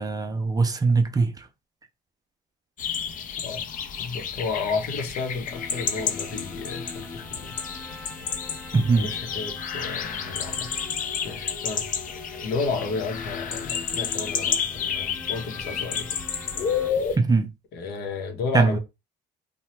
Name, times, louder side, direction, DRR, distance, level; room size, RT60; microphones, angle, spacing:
voice 1, 0.0-1.5 8.7-9.1 17.2-17.5 18.5-18.8, right 3 dB, 20° right, 0.5 m, -21 dB
sound 1, 2.8-17.2, left 7 dB, 55° left, 0.6 m, -31 dB
voice 2, 4.0-7.6 9.0-10.7 11.2-11.9 12.4-16.1 17.7-18.8, left 4 dB, 80° left, 0.8 m, -32 dB
sound 2, 5.5-16.9, left 3 dB, 10° left, 0.7 m, -42 dB
2.9 x 2.2 x 3.1 m
cardioid pair, 110°, 17 cm